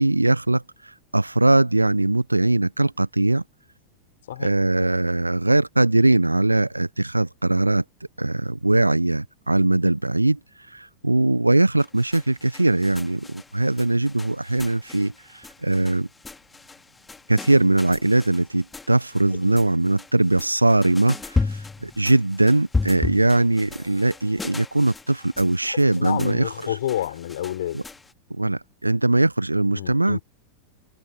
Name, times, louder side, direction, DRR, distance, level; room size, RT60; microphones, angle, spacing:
voice 1, 0.0-3.4 4.4-7.8 8.2-10.4 10.7-16.1 17.3-26.8 27.7-27.8 28.3-30.2, right 2 dB, 85° right, 1.0 m, -21 dB
sound 1, 11.8-28.1, left 3 dB, 10° left, 2.2 m, -35 dB
voice 2, 19.3-19.7 25.7-27.8 29.7-30.2, left 12 dB, 60° left, 5.4 m, -30 dB
figure-of-eight pair, 90°, 0 cm